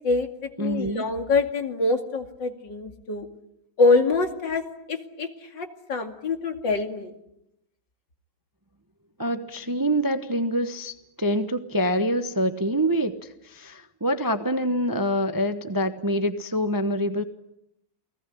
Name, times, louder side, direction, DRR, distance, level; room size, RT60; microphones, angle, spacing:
voice 1, 0.0-3.3 3.8-7.1, left 3 dB, 65° left, 6 dB, 3.1 m, -25 dB
voice 2, 0.6-1.0 9.2-13.2 13.4-17.2, equal, 15° right, 9 dB, 0.9 m, -25 dB
29.5 x 19.5 x 10.0 m, 0.84 s
omnidirectional pair, 2.1 m